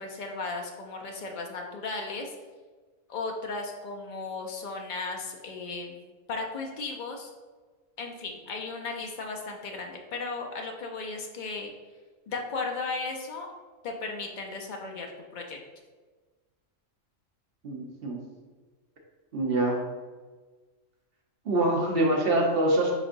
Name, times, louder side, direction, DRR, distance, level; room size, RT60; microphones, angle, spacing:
voice 1, 0.0-2.3 3.1-6.0 6.3-7.3 8.0-11.7 12.3-13.5 13.8-15.6, left 3 dB, 65° left, 1 dB, 0.5 m, -35 dB
voice 2, 17.6-18.2 19.3-19.8 21.4-22.9, right 1 dB, 50° right, -1 dB, 0.9 m, -25 dB
5.0 x 3.8 x 2.6 m, 1.3 s
omnidirectional pair, 1.3 m